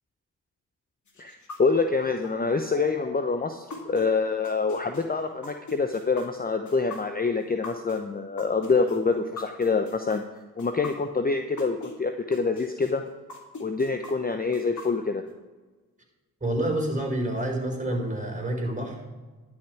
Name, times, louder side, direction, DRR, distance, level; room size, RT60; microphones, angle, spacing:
sound 1, 1.1-11.9 12.3-15.3, left 3 dB, 40° left, 2.6 m, -42 dB
voice 1, 1.2-10.2 10.6-13.0 13.6-15.2, left 4 dB, 20° left, 6 dB, 0.9 m, -26 dB
voice 2, 16.4-19.0, right 1 dB, 20° right, 0 dB, 4.6 m, -28 dB
11.5 x 9.5 x 4.7 m, 1.2 s
hypercardioid pair, 40°, 43 cm